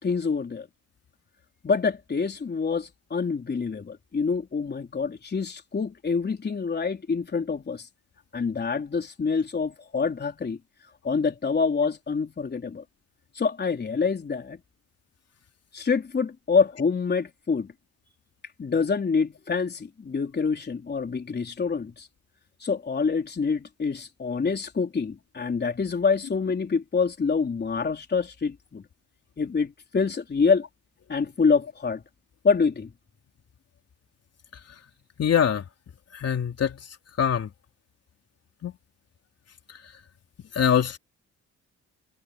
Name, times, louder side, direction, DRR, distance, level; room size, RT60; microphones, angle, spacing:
voice 1, 0.0-0.7 1.6-7.9 8.3-10.6 11.0-12.8 13.4-14.6 15.7-17.7 18.6-22.1 22.6-28.8 29.4-30.6 31.1-32.0 32.4-32.9, left 5 dB, 35° left, 3.7 m, -26 dB
voice 2, 35.2-35.6 36.1-36.8 37.2-37.5 38.6-38.7 40.5-41.0, left 8 dB, 55° left, 3.5 m, -23 dB
cardioid pair, 90°, 30 cm